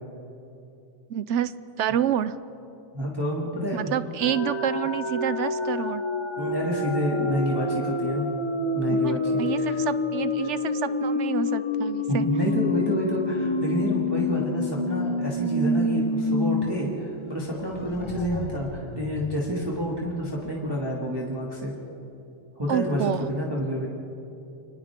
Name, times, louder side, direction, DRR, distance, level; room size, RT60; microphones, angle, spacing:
voice 1, 1.1-1.5 1.8-2.4 3.7-6.0 8.9-12.3 22.7-23.3, right 10 dB, 70° right, 15 dB, 0.9 m, -28 dB
voice 2, 2.9-4.1 6.4-8.3 8.7-9.8 12.1-21.7 22.6-23.9, equal, 15° right, -4 dB, 2.3 m, -28 dB
sound 1, 4.2-16.7 17.0-17.1 17.5-20.2, left 2 dB, 25° left, 0.9 m, -28 dB
29.0 x 24.5 x 3.7 m, 2.7 s
omnidirectional pair, 1.4 m